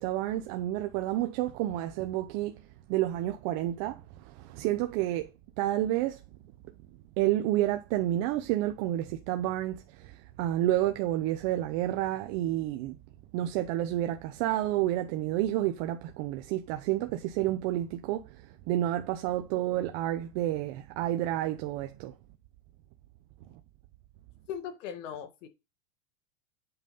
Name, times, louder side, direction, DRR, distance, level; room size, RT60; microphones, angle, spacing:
voice 1, 0.0-2.6 2.9-5.3 5.6-6.2 7.2-13.0 13.3-22.1, right 14 dB, 45° right, 0.9 m, -30 dB
voice 2, 24.5-25.5, left 8 dB, 75° left, 2.2 m, -39 dB
8.2 x 5.5 x 5.4 m
supercardioid pair, 155°, 37 cm